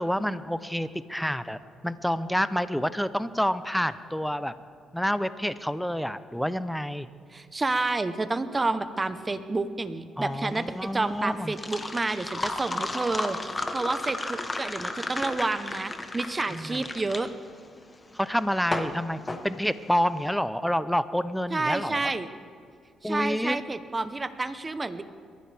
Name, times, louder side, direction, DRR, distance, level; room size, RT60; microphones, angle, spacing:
voice 1, 0.0-1.6 1.8-4.5 4.9-7.1 10.2-11.5 16.5-16.8 18.1-22.1 23.0-23.6, equal, ahead, 13 dB, 0.6 m, -28 dB
voice 2, 7.3-17.3 21.5-22.3 23.0-25.0, right 3 dB, 25° right, 11 dB, 0.9 m, -29 dB
sound 1, 10.3-20.2, left 2 dB, 20° left, 1.2 m, -34 dB
22.0 x 15.0 x 3.5 m, 2.3 s
cardioid pair, 90°, 0 cm